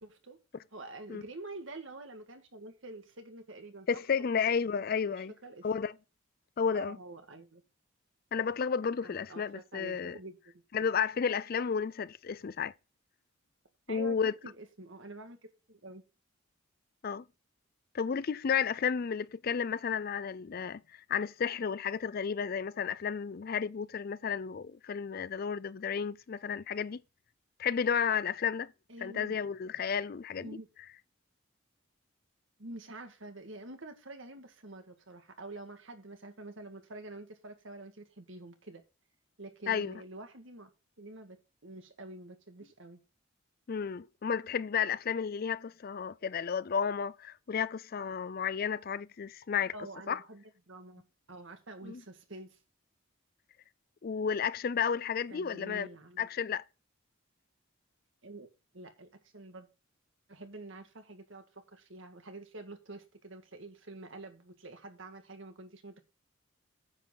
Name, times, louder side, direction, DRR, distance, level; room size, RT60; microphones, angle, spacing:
voice 1, 0.0-0.4 0.7-3.9 5.0-5.1 5.4-5.7 6.7-7.6 9.0-10.4 13.9-15.4 15.7-16.0 28.9-29.4 30.4-30.7 32.6-38.8 39.4-40.7 41.0-43.0 49.7-52.6 55.3-56.3 58.2-58.5 58.7-59.7 60.3-66.0, right 2 dB, 65° right, 1.8 m, -47 dB
voice 2, 3.9-5.3 5.6-5.9 6.6-7.0 8.3-10.2 10.7-12.7 13.9-14.3 17.0-17.2 17.9-27.0 27.6-28.7 29.0-30.5 39.7-39.9 43.7-49.7 50.1-50.2 51.8-52.0 54.0-55.9 56.2-56.6, left 6 dB, 45° left, 0.4 m, -32 dB
9.8 x 7.6 x 4.0 m
head